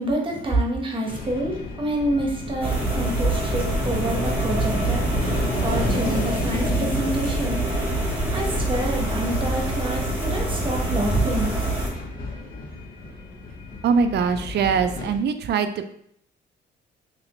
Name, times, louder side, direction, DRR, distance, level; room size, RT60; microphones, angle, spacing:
voice 1, 0.0-7.7 8.0-11.5, right 1 dB, 25° right, 0 dB, 1.1 m, -27 dB
sound 1, 1.0-15.2, left 3 dB, 45° left, 0.9 m, -33 dB
sound 2, 2.6-11.9, right 2 dB, 10° right, 1.5 m, -25 dB
voice 2, 13.8-15.9, right 6 dB, 60° right, 9 dB, 0.4 m, -22 dB
3.3 x 3.1 x 3.0 m, 0.67 s
cardioid pair, 90°, 20 cm